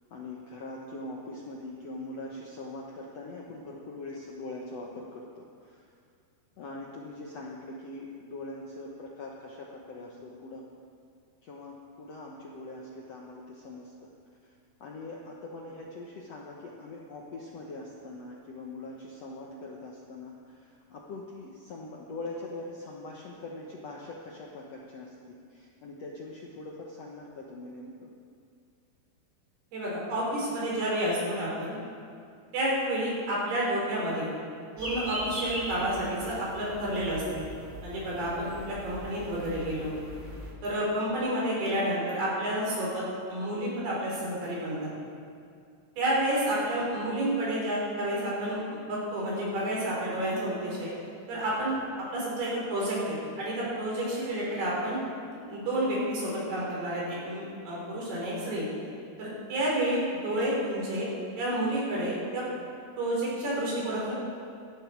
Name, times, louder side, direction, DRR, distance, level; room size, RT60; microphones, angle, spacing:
voice 1, 0.1-5.8 6.6-10.6 11.4-13.9 14.4-14.5 14.8-28.1 32.9-33.0 35.4-35.5 38.5-38.7 46.1-46.3 54.5-54.9 58.4-58.5, left 2 dB, 70° left, -2 dB, 1.6 m, -42 dB
voice 2, 29.7-31.8 32.5-34.3 34.8-37.4 37.8-40.0 40.6-43.0 43.3-44.9 46.0-50.9 51.3-51.8 52.1-55.0 55.5-58.7 59.2-61.1 61.4-62.4 63.0-64.1, right 1 dB, 80° right, -5 dB, 6.5 m, -30 dB
sound 1, 34.8-40.5, equal, 25° right, 1.2 m, -40 dB
18.0 x 13.5 x 4.7 m, 2.3 s
omnidirectional pair, 4.5 m